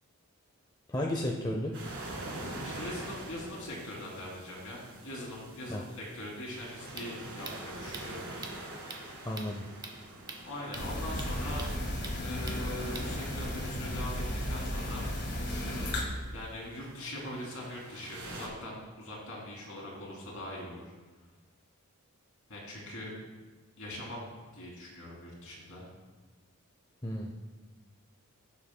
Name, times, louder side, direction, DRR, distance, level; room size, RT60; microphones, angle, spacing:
voice 1, 0.9-1.7 5.7-5.8 9.2-9.6 27.0-27.3, left 1 dB, 20° left, 0 dB, 0.6 m, -33 dB
sound 1, 1.7-18.5, right 2 dB, 55° right, 1.9 m, -45 dB
voice 2, 2.6-8.7 10.4-11.6 12.2-15.0 16.3-20.8 22.5-23.1 23.8-24.3 24.5-25.9, left 1 dB, 65° left, -3 dB, 2.8 m, -42 dB
sound 2, 6.7-13.4, right 3 dB, 20° right, 0.9 m, -47 dB
sound 3, 10.7-16.0, left 1 dB, 50° left, 1.6 m, -34 dB
15.5 x 7.2 x 2.2 m, 1.3 s
head